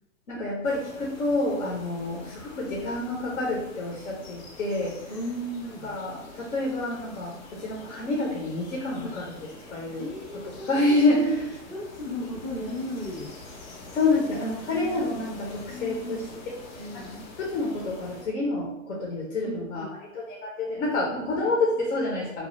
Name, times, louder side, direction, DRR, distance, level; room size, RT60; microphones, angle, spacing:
voice 1, 0.3-5.0 5.8-9.3 9.7-10.1 10.7-11.4 13.9-16.3 16.7-17.1 17.4-19.9 20.1-22.5, left 2 dB, 75° left, -2 dB, 0.9 m, -28 dB
sound 1, 0.6-18.2, left 2 dB, 45° left, 0.7 m, -45 dB
voice 2, 5.1-5.9 9.0-9.2 10.0-13.3 14.7-15.3 15.7-16.4 16.8-17.1 19.4-20.0 21.2-21.6, equal, 15° left, -4 dB, 0.3 m, -36 dB
2.9 x 2.0 x 3.1 m, 0.83 s
hypercardioid pair, 125°, 41 cm